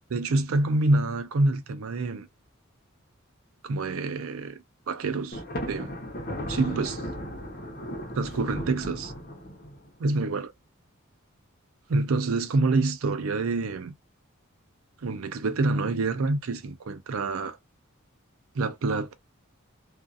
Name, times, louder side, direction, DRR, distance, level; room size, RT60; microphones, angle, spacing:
voice 1, 0.1-2.3 3.6-5.9 6.5-7.0 8.2-9.1 10.0-10.5 11.9-13.9 15.0-17.6 18.5-19.1, right 3 dB, 80° right, 0.5 m, -27 dB
Thunder, 5.3-9.9, equal, 45° left, 0.9 m, -36 dB
2.5 x 2.4 x 2.4 m
head